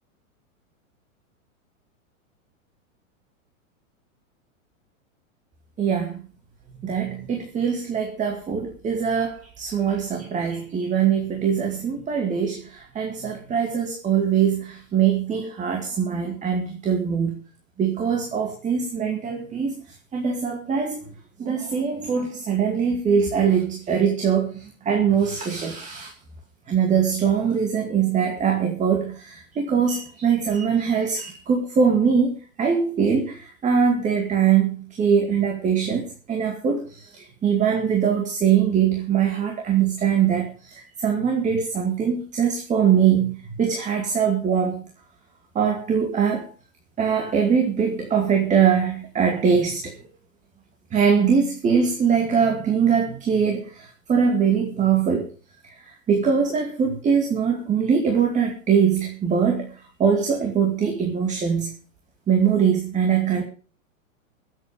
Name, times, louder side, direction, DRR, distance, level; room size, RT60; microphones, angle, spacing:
voice 1, 5.8-6.2 6.8-17.4 17.8-19.7 20.1-21.0 21.4-26.1 26.7-44.8 45.5-46.5 47.0-49.9 50.9-55.3 55.6-59.7 60.0-61.7 62.3-63.4, right 7 dB, 15° right, 3 dB, 2.3 m, -22 dB
21.0 x 8.5 x 5.2 m, 0.38 s
hypercardioid pair, 145°, 41 cm